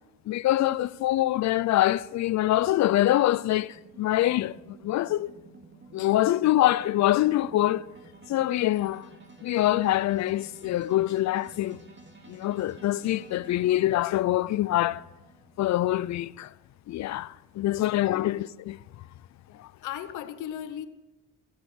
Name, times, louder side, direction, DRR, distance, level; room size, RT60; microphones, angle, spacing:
voice 1, 0.3-5.3 5.9-7.9 8.3-9.1 9.4-11.8 12.3-15.0 15.6-16.5 16.9-18.8 19.6-19.7, left 14 dB, 65° left, 0.5 m, -25 dB
sound 1, 2.2-15.8, right 3 dB, 35° right, 2.7 m, -52 dB
voice 2, 17.8-18.3 19.5-20.9, left 10 dB, 80° left, 1.0 m, -38 dB
15.0 x 8.2 x 6.2 m
cardioid pair, 90°, 30 cm